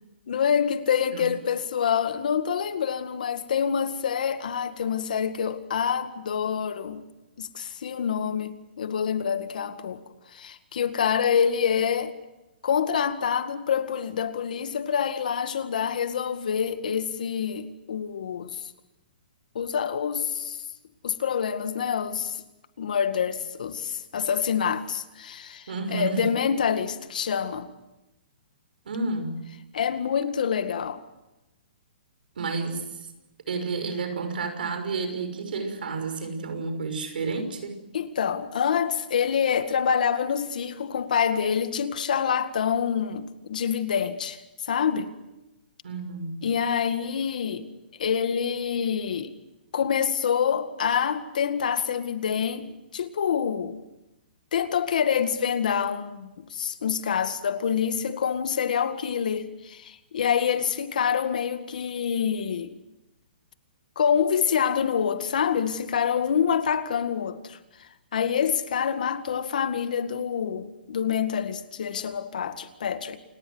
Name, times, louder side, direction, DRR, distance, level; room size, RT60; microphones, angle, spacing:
voice 1, 0.3-7.0 7.4-10.0 10.3-12.2 12.6-18.6 19.6-20.6 21.0-22.4 22.8-27.7 29.7-31.0 37.9-45.1 46.4-47.7 48.0-49.3 49.7-53.8 54.5-62.8 64.0-73.2, left 7 dB, 55° left, 1.9 m, -26 dB
voice 2, 25.7-26.3 28.9-29.4 32.4-33.1 33.5-37.7 45.8-46.4, right 4 dB, 70° right, 5.8 m, -30 dB
28.5 x 19.5 x 8.0 m
hypercardioid pair, 180°, 5 cm